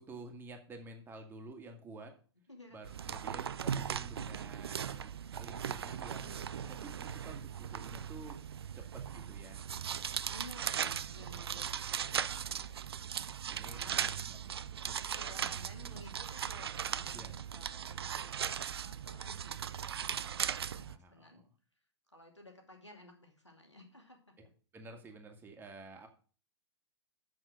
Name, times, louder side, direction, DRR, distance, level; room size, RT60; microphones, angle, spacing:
voice 1, 0.0-2.1 2.7-9.6 11.5-11.6 13.1-14.5 14.8-15.0 17.1-17.3 20.6-21.5 24.4-24.5 24.7-26.1, right 2 dB, 15° right, 3 dB, 1.9 m, -51 dB
voice 2, 2.5-2.8 10.3-12.8 13.7-14.3 14.6-14.7 15.1-21.4 22.1-24.4, left 1 dB, 90° left, 2 dB, 2.5 m, -55 dB
sound 1, 2.8-21.0, right 8 dB, 60° right, 0.5 m, -38 dB
8.1 x 6.2 x 6.6 m, 0.40 s
figure-of-eight pair, 105°, 14 cm